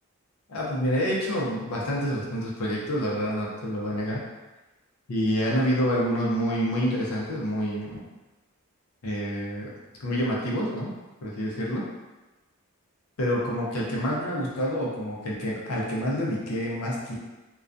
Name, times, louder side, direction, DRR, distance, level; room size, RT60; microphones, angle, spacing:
voice 1, 0.5-4.2 5.1-8.0 9.0-9.7 10.0-10.9 11.2-11.8 13.2-17.1, equal, 75° left, -4 dB, 0.6 m, -27 dB
2.3 x 2.2 x 2.5 m, 1.1 s
head